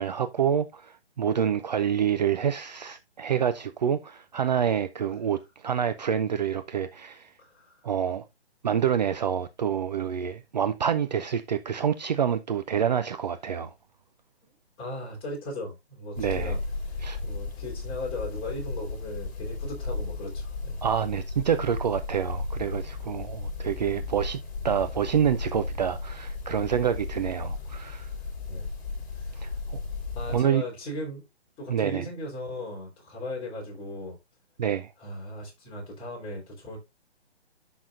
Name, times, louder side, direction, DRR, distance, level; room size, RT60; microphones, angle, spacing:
voice 1, 0.0-7.3 7.8-8.2 8.6-13.7 16.2-16.5 17.0-17.2 20.8-24.4 24.6-28.1 29.4-29.8 30.3-30.6 31.7-32.0 34.6-34.9, right 8 dB, 40° right, 0.5 m, -27 dB
voice 2, 14.8-16.6 16.9-20.8 23.1-23.3 28.5-28.7 29.2-29.3 30.1-31.2 31.6-34.2 35.0-36.8, left 1 dB, 15° left, 3.7 m, -37 dB
sound 1, 16.2-30.4, left 3 dB, 40° left, 3.8 m, -35 dB
11.5 x 6.1 x 2.5 m
hypercardioid pair, 150°, 33 cm